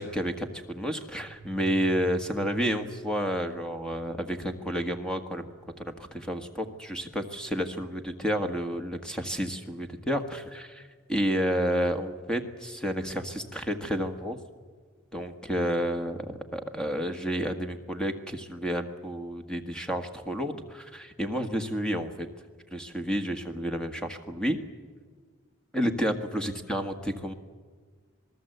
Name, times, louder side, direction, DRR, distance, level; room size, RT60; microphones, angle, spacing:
voice 1, 0.0-5.4 5.8-14.4 15.1-22.3 22.7-24.6 25.7-27.3, equal, 5° left, 6 dB, 1.6 m, -30 dB
sound 1, 1.0-9.2, right 2 dB, 65° left, 6.7 m, -50 dB
26.5 x 19.5 x 8.0 m, 1.5 s
head